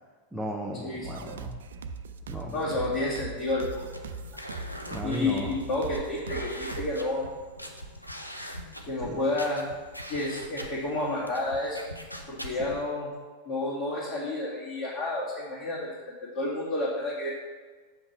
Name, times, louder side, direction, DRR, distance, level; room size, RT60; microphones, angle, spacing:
voice 1, 0.3-1.6 2.3-2.6 4.9-5.6 9.0-9.1 12.5-12.6, equal, 5° right, -2 dB, 0.8 m, -36 dB
sound 1, 1.0-7.0, right 4 dB, 65° right, 0.4 m, -40 dB
voice 2, 2.5-3.9 5.0-7.2 8.8-9.7 10.1-11.8 12.3-13.1 13.5-17.3, left 2 dB, 40° left, -7 dB, 2.0 m, -30 dB
sound 2, 3.7-12.8, equal, 90° left, 0.7 m, -42 dB
7.6 x 5.8 x 4.4 m, 1.4 s
figure-of-eight pair, 90°, 0 cm